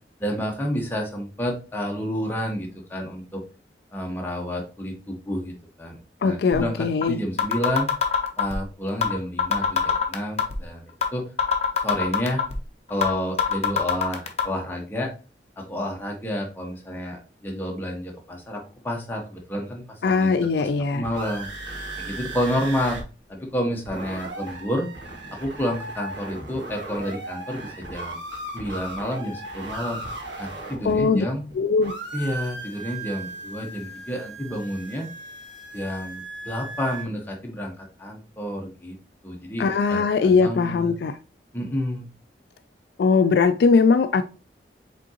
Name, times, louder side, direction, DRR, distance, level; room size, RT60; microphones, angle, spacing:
voice 1, 0.2-3.4 3.9-7.9 8.4-11.2 11.8-12.5 12.9-15.1 15.6-21.5 22.0-23.0 23.3-24.9 25.3-28.2 28.5-30.0 30.4-31.4 32.1-35.1 35.7-39.0 39.2-40.9 41.5-42.1, equal, 10° left, 0.9 m, -30 dB
voice 2, 6.2-7.2 20.0-21.0 30.8-31.3 31.5-32.0 39.6-41.2 43.0-44.2, left 4 dB, 65° left, 0.3 m, -20 dB
sound 1, 6.5-6.6 7.0-7.1 7.4-8.6 9.0-9.1 9.4-10.6 11.0-11.1 11.4-12.6 13.0-13.1 13.4-14.4, left 6 dB, 35° left, 0.7 m, -22 dB
sound 2, 20.8-23.0 23.3-23.4 23.6-31.5 31.8-37.0, right 2 dB, 90° right, 1.6 m, -37 dB
5.1 x 3.7 x 2.8 m
head